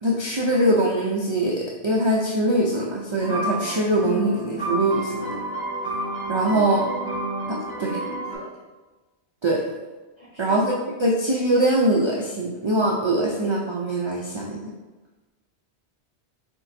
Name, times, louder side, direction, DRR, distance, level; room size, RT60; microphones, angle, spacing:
voice 1, 0.0-5.3 6.3-6.8 7.8-8.0 9.4-9.6 10.4-10.7 11.0-14.6, right 1 dB, 45° right, -3 dB, 0.3 m, -22 dB
sound 1, 3.2-8.4, right 1 dB, 20° right, 1.4 m, -30 dB
voice 2, 7.2-8.5 10.2-10.6, equal, 30° left, -8 dB, 1.4 m, -42 dB
4.4 x 4.3 x 2.6 m, 1.2 s
omnidirectional pair, 1.1 m